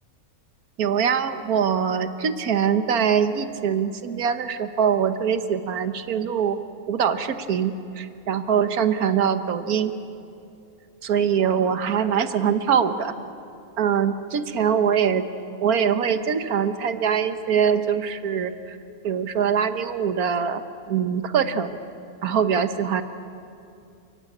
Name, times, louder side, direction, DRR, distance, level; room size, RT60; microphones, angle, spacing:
voice 1, 0.8-6.6 6.9-9.9 11.0-13.1 13.8-15.2 15.6-18.8 19.0-20.6 20.9-21.8 22.2-23.0, right 7 dB, 85° right, 9 dB, 1.6 m, -23 dB
29.0 x 15.5 x 9.8 m, 2.6 s
omnidirectional pair, 1.5 m